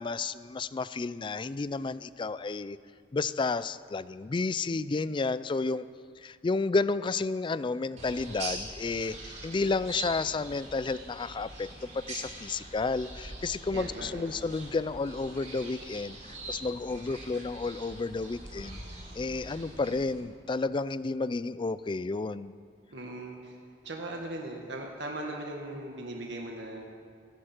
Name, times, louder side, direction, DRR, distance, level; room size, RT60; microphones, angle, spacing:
voice 1, 0.0-2.8 3.1-5.9 6.2-9.2 9.4-11.7 12.1-16.2 16.5-18.8 19.1-22.6, left 3 dB, 25° left, 16 dB, 0.3 m, -31 dB
sound 1, 8.0-20.2, right 2 dB, 40° right, 4.0 m, -43 dB
voice 2, 13.7-14.3 22.9-23.6 23.8-26.9, right 1 dB, 75° right, 0 dB, 1.7 m, -39 dB
27.5 x 11.5 x 4.5 m, 2.2 s
head